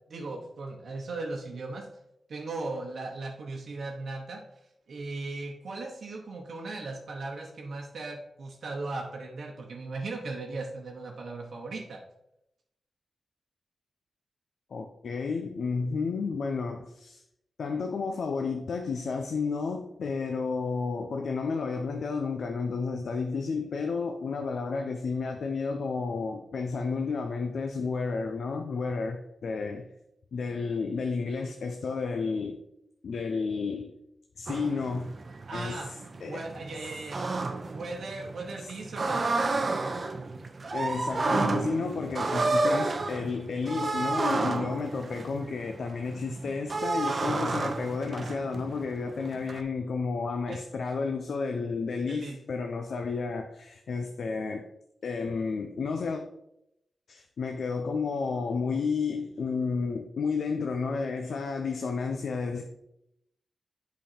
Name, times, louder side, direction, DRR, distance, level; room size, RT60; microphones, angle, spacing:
voice 1, 0.1-1.9 2.3-4.4 4.9-12.0 35.5-35.9 36.2-37.3 37.7-39.3 50.5-50.6 52.1-52.4, right 3 dB, 65° right, 0 dB, 1.0 m, -37 dB
voice 2, 14.7-17.2 17.6-29.9 30.3-32.6 33.0-33.9 34.4-35.2 35.5-36.4 38.6-38.7 40.7-54.7 55.0-56.2 57.1-62.6, left 4 dB, 70° left, 4 dB, 0.6 m, -31 dB
sound 1, 34.5-49.6, right 3 dB, 40° right, 0.7 m, -31 dB
8.0 x 5.2 x 4.3 m, 0.81 s
wide cardioid pair, 125°, 0 cm